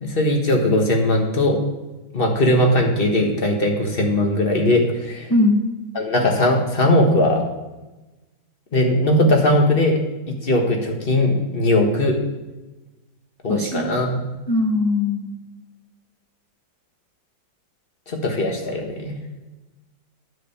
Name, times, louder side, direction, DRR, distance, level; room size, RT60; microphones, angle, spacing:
voice 1, 0.0-1.6 2.1-5.3 5.9-7.4 8.7-10.0 10.4-12.2 13.4-14.2 18.1-19.2, left 1 dB, 35° left, 2 dB, 1.4 m, -19 dB
voice 2, 5.3-5.6 13.5-13.9 14.5-15.3, left 2 dB, 20° left, 0 dB, 0.6 m, -20 dB
9.6 x 5.1 x 7.0 m, 1.1 s
omnidirectional pair, 1.9 m